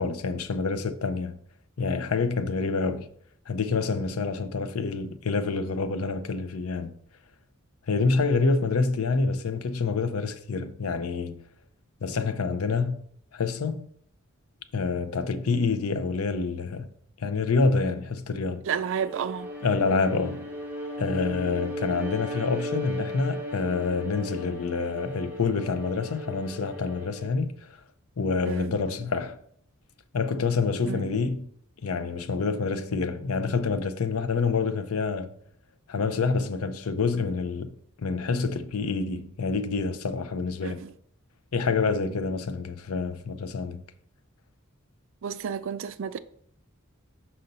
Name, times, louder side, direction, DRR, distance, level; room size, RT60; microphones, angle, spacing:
voice 1, 0.0-1.4 1.8-3.1 3.5-6.9 7.9-11.4 12.0-13.0 13.3-13.9 14.7-16.9 17.2-18.6 19.6-20.5 21.0-27.7 28.2-29.4 30.1-31.5 31.8-35.3 35.9-37.7 38.0-40.8 41.5-43.8, left 4 dB, 85° left, 0.6 m, -27 dB
voice 2, 18.6-19.5 19.9-20.1 28.5-28.7 30.9-31.2 40.6-40.9 45.2-46.2, right 7 dB, 60° right, 0.4 m, -31 dB
Bowed string instrument, 19.0-27.4, equal, 10° right, 1.1 m, -36 dB
5.6 x 5.4 x 4.0 m
head